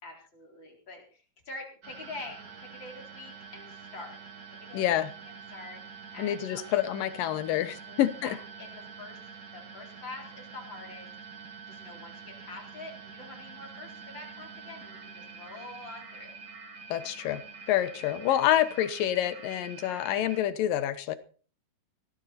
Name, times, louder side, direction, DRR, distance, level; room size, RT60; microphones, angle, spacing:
voice 1, 0.0-4.2 4.5-6.6 7.9-9.2 9.5-11.1 11.7-16.3, left 2 dB, 35° left, 1 dB, 4.8 m, -46 dB
sound 1, 1.8-20.4, right 5 dB, 35° right, 1.9 m, -46 dB
voice 2, 4.7-5.1 6.2-8.4 16.9-17.4 17.7-21.2, left 12 dB, 85° left, 13 dB, 2.7 m, -27 dB
17.0 x 14.5 x 4.2 m, 0.39 s
omnidirectional pair, 3.9 m